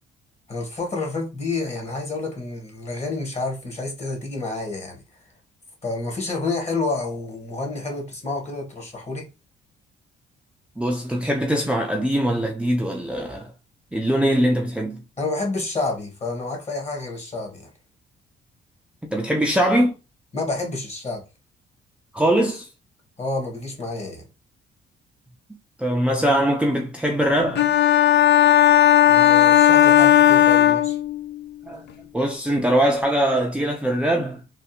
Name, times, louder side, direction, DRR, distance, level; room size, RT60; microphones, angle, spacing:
voice 1, 0.5-5.2 5.8-9.3 15.2-17.7 20.3-21.2 23.2-24.3 29.0-31.0, left 3 dB, 35° left, 1.6 m, -29 dB
voice 2, 10.8-13.5 13.9-15.0 19.0-20.0 22.1-22.7 25.8-27.7 31.6-31.9 32.1-34.4, right 1 dB, 5° right, 0.5 m, -22 dB
sound 1, 27.6-31.4, left 11 dB, 60° left, 0.6 m, -15 dB
3.4 x 2.5 x 2.7 m
cardioid pair, 90°, 20 cm